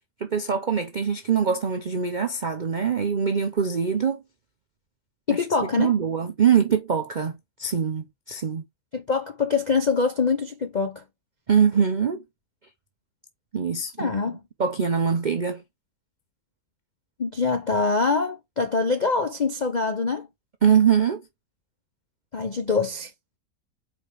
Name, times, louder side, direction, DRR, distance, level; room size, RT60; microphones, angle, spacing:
voice 1, 0.2-4.2 5.3-8.6 11.5-12.2 13.5-15.6 20.6-21.2, right 7 dB, 70° right, 0.4 m, -23 dB
voice 2, 5.3-5.9 8.9-11.0 14.0-14.4 17.2-20.3 22.3-23.1, left 4 dB, 60° left, 0.4 m, -24 dB
5.1 x 4.4 x 4.6 m
omnidirectional pair, 1.8 m